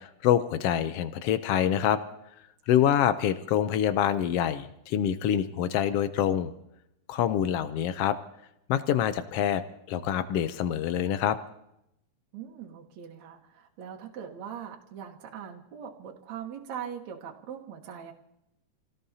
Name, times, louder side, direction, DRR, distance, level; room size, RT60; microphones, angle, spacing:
voice 1, 0.0-2.0 2.7-6.5 7.1-8.2 8.7-9.6 9.9-11.4, left 10 dB, 85° left, 11 dB, 1.3 m, -26 dB
voice 2, 12.3-18.1, right 8 dB, 65° right, 0 dB, 2.5 m, -41 dB
28.5 x 18.0 x 2.8 m, 0.82 s
omnidirectional pair, 3.6 m